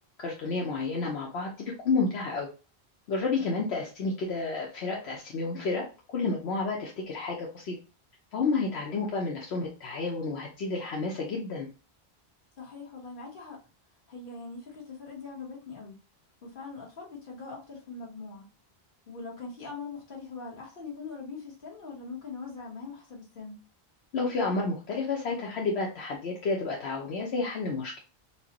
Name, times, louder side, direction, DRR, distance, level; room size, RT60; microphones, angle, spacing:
voice 1, 0.2-2.5 3.1-7.8 8.3-11.7 24.1-28.0, left 3 dB, 80° left, 1.0 m, -30 dB
voice 2, 12.6-13.6 14.1-16.0 16.4-18.5 19.1-23.6, left 4 dB, 55° left, 1.4 m, -42 dB
4.4 x 2.1 x 2.8 m
omnidirectional pair, 1.1 m